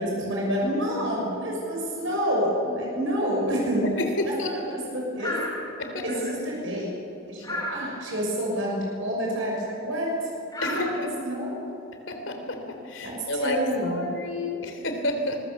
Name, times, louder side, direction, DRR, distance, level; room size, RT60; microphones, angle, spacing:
voice 1, 0.0-4.0 4.2-5.4 6.0-6.9 7.3-10.3 10.6-11.7 13.0-14.1, equal, 65° right, -2 dB, 6.6 m, -28 dB
voice 2, 4.2-4.5 5.8-6.0 10.6-10.9 12.1-15.4, left 1 dB, 60° left, 5 dB, 3.4 m, -30 dB
sound 1, 5.2-5.7 6.1-6.3 7.4-7.9 9.8-10.0 10.5-11.1 13.4-13.5, left 1 dB, 20° left, 6.8 m, -32 dB
25.0 x 21.5 x 7.2 m, 2.9 s
head